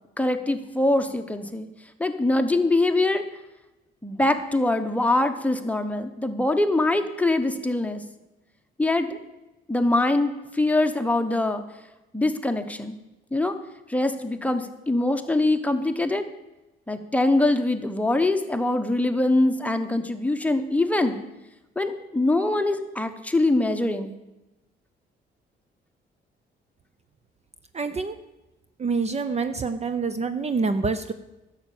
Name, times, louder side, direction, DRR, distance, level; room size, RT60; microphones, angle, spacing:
voice 1, 0.2-1.7 2.0-3.2 4.0-8.0 8.8-9.2 9.7-11.6 12.1-13.0 13.3-13.5 13.9-16.2 16.9-21.2 21.8-24.1, left 2 dB, 5° left, 6 dB, 1.1 m, -23 dB
voice 2, 27.7-28.2 28.8-31.1, right 4 dB, 35° right, 10 dB, 0.6 m, -26 dB
11.0 x 7.4 x 7.2 m, 0.99 s
cardioid pair, 90°, 20 cm